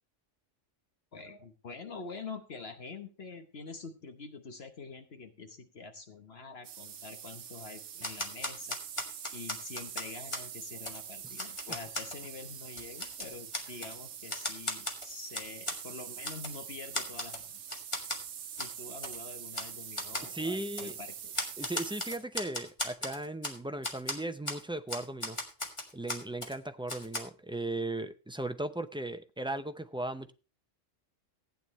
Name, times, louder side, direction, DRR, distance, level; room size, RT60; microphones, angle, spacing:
voice 1, 1.1-8.8 9.3-17.8 18.6-21.5, left 4 dB, 55° left, 1.3 m, -46 dB
sound 1, 6.6-22.2, right 8 dB, 80° right, 1.2 m, -45 dB
Typewriter, 8.0-10.5 10.9-11.0 11.4-12.2 12.6-13.9 14.3-15.8 16.2-16.6 16.9-17.4 17.7-18.2 18.6-18.7 19.0-19.2 19.5-19.7 20.0-20.3 20.8-20.9 21.3-23.6 23.8-24.2 24.5-24.6 24.9-26.5 26.9-27.2, left 1 dB, 25° left, 1.8 m, -37 dB
voice 2, 20.2-20.9 21.6-25.4 25.9-30.3, right 2 dB, 5° right, 0.4 m, -37 dB
15.5 x 9.2 x 3.1 m
omnidirectional pair, 1.3 m